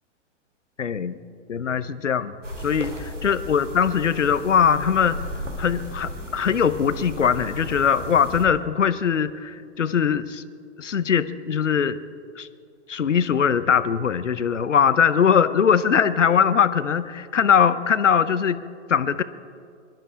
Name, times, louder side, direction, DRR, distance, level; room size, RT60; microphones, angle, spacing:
voice 1, 0.8-1.2 1.5-2.3 2.6-5.3 5.6-10.4 10.8-12.0 12.4-12.5 12.9-18.6 18.9-19.2, left 7 dB, 80° left, 14 dB, 0.8 m, -21 dB
sound 1, 2.4-8.5, equal, 85° right, 2.0 m, -35 dB
23.5 x 12.0 x 4.9 m, 2.4 s
figure-of-eight pair, 105°, 36 cm